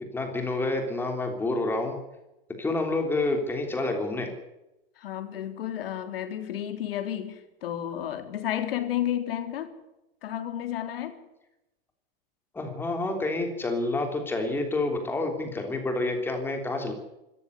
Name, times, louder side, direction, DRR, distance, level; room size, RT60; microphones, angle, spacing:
voice 1, 0.1-2.0 2.6-4.3 12.5-16.9, left 2 dB, 5° left, 4 dB, 3.4 m, -28 dB
voice 2, 5.0-9.8 10.2-11.2, left 11 dB, 75° left, 7 dB, 3.8 m, -32 dB
25.0 x 14.0 x 8.1 m, 0.94 s
supercardioid pair, 170°, 29 cm